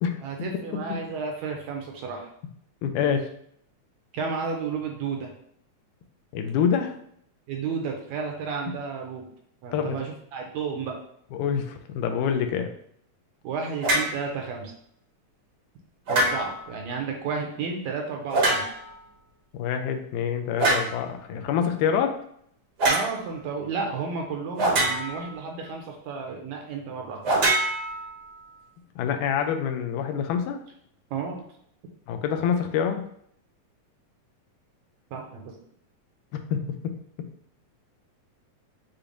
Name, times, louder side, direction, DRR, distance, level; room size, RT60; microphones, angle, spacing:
voice 1, 0.2-2.3 4.1-5.3 7.5-9.3 9.6-11.0 13.4-14.7 16.1-18.7 22.9-27.2 31.1-31.4 35.1-35.5, right 5 dB, 75° right, 1 dB, 1.8 m, -32 dB
voice 2, 2.8-3.3 6.3-6.9 9.7-10.0 11.4-12.7 19.5-22.1 29.0-30.6 32.1-33.0 36.5-36.6, left 7 dB, 90° left, 6 dB, 2.1 m, -26 dB
sound 1, 13.8-14.2 16.1-16.7 18.3-19.0 20.6-21.0 22.8-23.1 24.6-25.3 27.2-28.4, right 2 dB, 60° right, 1.0 m, -24 dB
6.6 x 2.9 x 2.5 m, 0.68 s
omnidirectional pair, 3.5 m